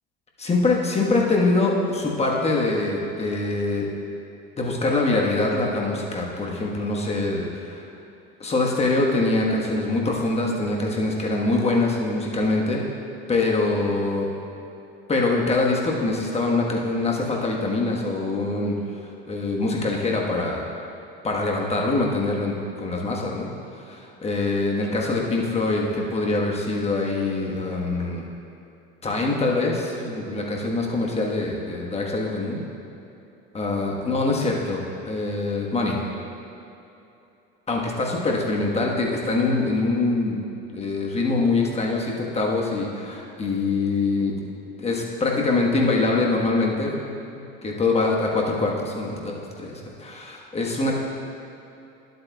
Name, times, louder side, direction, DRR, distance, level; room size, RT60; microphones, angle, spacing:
voice 1, 0.4-3.9 4.6-7.8 8.4-12.8 13.3-14.3 15.1-18.7 19.3-20.6 21.2-23.5 23.8-28.3 29.0-32.6 33.5-36.0 37.7-40.4 40.7-44.3 44.8-47.1 47.6-51.0, left 3 dB, 20° left, -1 dB, 1.4 m, -24 dB
11.5 x 8.0 x 2.4 m, 2.9 s
hypercardioid pair, 80°, 29 cm